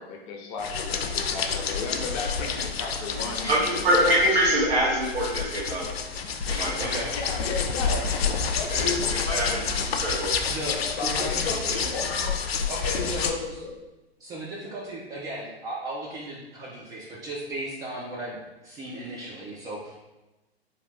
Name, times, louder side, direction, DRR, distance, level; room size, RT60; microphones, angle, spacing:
voice 1, 0.0-4.0 7.1-10.0 10.7-12.4 12.8-13.8, left 4 dB, 35° left, 0 dB, 0.7 m, -35 dB
sound 1, 0.6-13.3, left 6 dB, 70° left, 0.5 m, -29 dB
voice 2, 3.2-5.9 6.5-7.1 8.7-9.6 9.9-10.3, equal, 70° right, -5 dB, 1.2 m, -25 dB
voice 3, 11.0-11.8 12.7-13.3 14.2-18.4 18.6-20.0, right 1 dB, 10° right, -6 dB, 0.3 m, -36 dB
3.9 x 2.7 x 3.2 m, 1.0 s
figure-of-eight pair, 105°, 31 cm